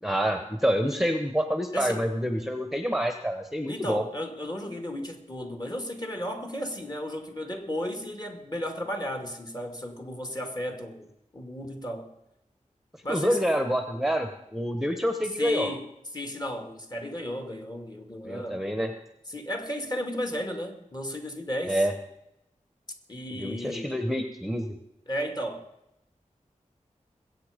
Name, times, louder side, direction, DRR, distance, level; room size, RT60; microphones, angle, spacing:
voice 1, 0.0-4.0 13.1-15.7 18.2-18.9 21.7-21.9 23.4-24.8, equal, ahead, 1.2 m, -27 dB
voice 2, 1.7-2.1 3.7-11.1 11.3-12.1 13.0-13.4 15.4-15.8 16.1-18.6 19.3-21.9 23.1-24.0 25.1-25.6, equal, 30° left, 2.4 m, -34 dB
21.5 x 8.3 x 5.2 m
wide cardioid pair, 70°, 13 cm